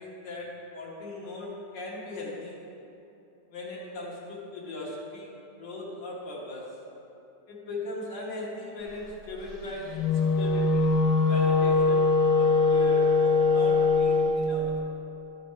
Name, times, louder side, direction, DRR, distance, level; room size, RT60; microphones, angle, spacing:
voice 1, 0.0-2.7 3.5-6.8 7.5-10.9 11.3-12.1 12.3-14.7, left 2 dB, 85° left, -5 dB, 1.9 m, -39 dB
Wind instrument woodwind instrument, 9.9-14.4, left 3 dB, 65° left, 1.2 m, -22 dB
11.0 x 5.9 x 3.2 m, 2.9 s
omnidirectional pair, 1.9 m